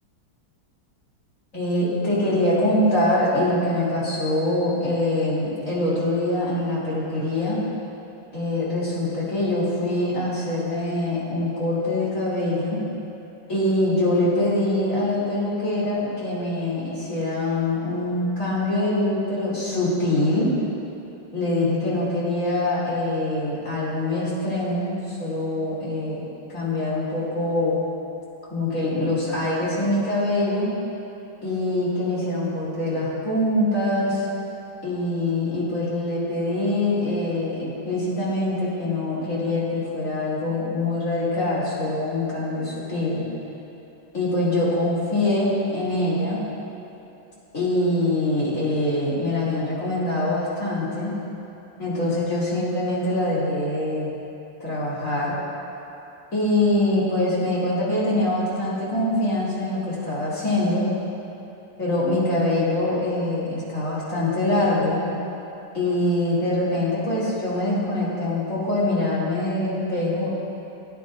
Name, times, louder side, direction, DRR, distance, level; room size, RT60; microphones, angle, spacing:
voice 1, 1.5-7.6 8.3-12.8 13.5-20.5 21.3-26.2 26.5-27.8 28.5-30.7 31.4-34.3 34.8-43.2 44.1-46.4 47.5-51.1 51.8-54.1 54.6-55.4 56.3-60.9 61.8-65.1 65.7-70.4, left 1 dB, 35° left, -8 dB, 3.1 m, -24 dB
18.0 x 9.3 x 2.5 m, 3.0 s
omnidirectional pair, 2.3 m